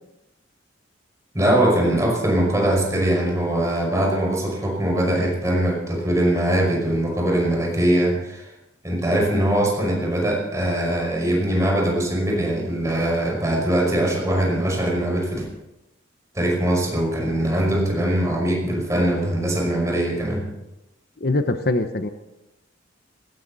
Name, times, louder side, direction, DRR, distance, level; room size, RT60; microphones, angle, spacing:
voice 1, 1.3-8.5 8.8-15.5 16.3-20.4, right 1 dB, 15° right, -1 dB, 5.4 m, -22 dB
voice 2, 21.2-22.1, left 2 dB, 50° left, 8 dB, 0.9 m, -22 dB
19.5 x 17.0 x 4.1 m, 0.94 s
head